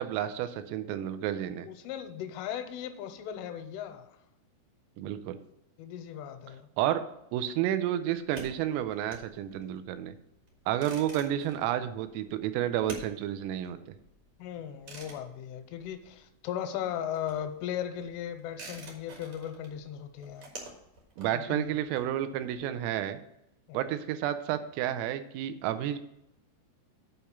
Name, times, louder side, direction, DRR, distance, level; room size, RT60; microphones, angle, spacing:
voice 1, 0.0-1.7 5.0-5.4 6.8-7.0 7.3-10.2 10.7-13.8 21.2-23.2 23.7-26.0, right 11 dB, 90° right, 10 dB, 3.3 m, -31 dB
voice 2, 1.6-4.2 5.8-6.7 14.4-20.5 21.3-21.7 23.7-23.9, left 9 dB, 85° left, 8 dB, 3.1 m, -37 dB
sound 1, 8.3-16.5 16.8-22.5, right 2 dB, 65° right, 1.6 m, -49 dB
8.5 x 4.4 x 6.9 m, 0.82 s
omnidirectional pair, 5.7 m